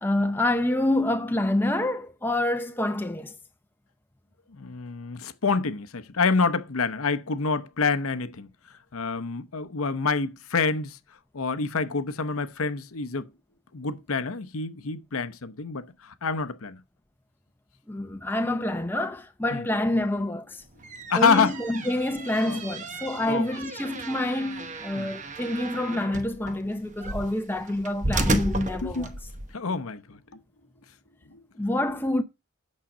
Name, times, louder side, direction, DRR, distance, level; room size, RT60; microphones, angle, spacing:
voice 1, 0.0-3.3 17.9-20.6 21.1-29.1 31.6-32.2, left 1 dB, 10° left, 0.6 m, -27 dB
voice 2, 4.6-8.5 8.9-11.0 11.3-13.3 13.7-16.8 19.5-19.6 21.1-21.5 22.4-22.8 23.3-23.6 25.0-25.1 28.8-29.1 29.5-30.2 31.3-31.4, left 4 dB, 70° left, 0.8 m, -27 dB
sound 1, 20.7-29.5, right 2 dB, 35° right, 1.0 m, -33 dB
8.7 x 6.6 x 5.0 m
head